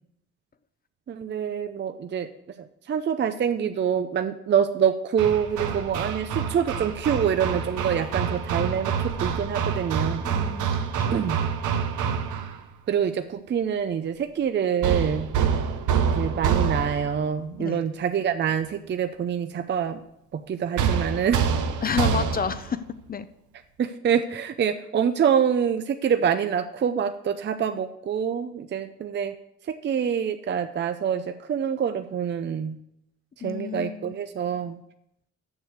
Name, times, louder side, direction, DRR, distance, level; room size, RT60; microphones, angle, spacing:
voice 1, 1.1-2.3 2.6-10.2 11.1-11.4 12.9-15.3 16.1-20.0 20.3-21.5 23.8-29.3 29.7-32.8 33.4-34.8, right 8 dB, 35° right, 9 dB, 0.5 m, -26 dB
Hammer, 5.2-12.6 14.8-17.2 20.8-22.7, right 7 dB, 80° right, 0.9 m, -26 dB
voice 2, 5.7-6.0 10.2-10.7 11.0-11.3 17.6-17.8 21.8-22.8 23.1-23.3 33.4-34.1, left 6 dB, 30° left, 13 dB, 0.6 m, -30 dB
7.2 x 6.5 x 6.5 m, 0.79 s
cardioid pair, 90°, 30 cm